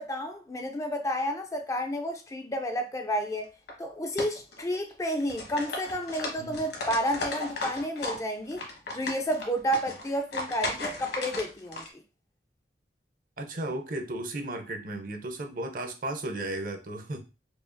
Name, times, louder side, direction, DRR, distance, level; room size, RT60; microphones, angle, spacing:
voice 1, 0.0-3.5 3.8-8.6 8.9-11.8, equal, 20° left, 0.4 m, -31 dB
sound 1, 3.4-3.7 4.2-4.9 5.2-8.2 8.5-11.9, left 2 dB, 65° left, 1.2 m, -35 dB
voice 2, 6.4-6.7 13.4-17.2, right 1 dB, 50° right, 0.6 m, -35 dB
4.8 x 2.4 x 2.5 m
head